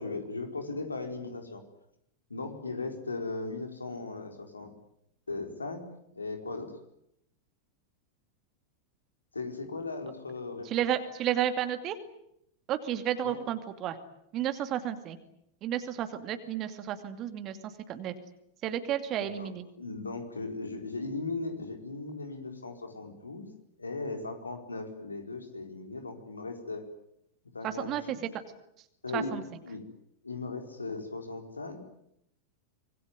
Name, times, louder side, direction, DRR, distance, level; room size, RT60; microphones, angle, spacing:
voice 1, 0.0-1.6 2.3-4.7 5.3-6.7 9.3-10.7 13.2-13.4 19.2-19.5 19.8-23.5 23.8-26.8 27.5-28.2 29.0-29.8 30.2-31.8, left 3 dB, 80° left, 5 dB, 4.5 m, -37 dB
voice 2, 10.7-12.0 12.7-14.0 14.3-15.2 15.6-17.6 17.9-18.1 18.6-19.6 27.6-28.0 29.1-29.4, right 11 dB, 35° right, 9 dB, 2.5 m, -32 dB
26.0 x 21.5 x 9.5 m, 0.76 s
figure-of-eight pair, 90°, 0 cm